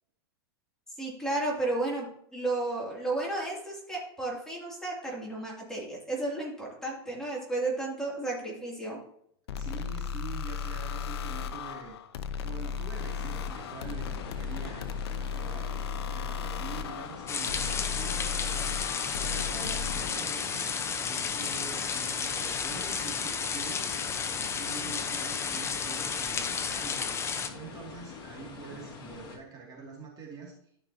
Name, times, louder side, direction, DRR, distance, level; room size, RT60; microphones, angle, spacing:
voice 1, 1.0-9.0, right 2 dB, 5° left, -4 dB, 2.6 m, -33 dB
sound 1, 9.5-20.2, left 7 dB, 70° left, 0.7 m, -35 dB
voice 2, 9.5-12.0 12.4-15.8 16.1-20.7 21.1-23.9 24.4-27.0 27.5-30.5, right 5 dB, 30° right, -2 dB, 2.3 m, -45 dB
sound 2, 12.9-29.4, left 4 dB, 35° left, 2.2 m, -46 dB
sound 3, 17.3-27.5, left 6 dB, 20° left, 0.7 m, -32 dB
12.5 x 5.4 x 2.8 m, 0.70 s
hypercardioid pair, 125°, 14 cm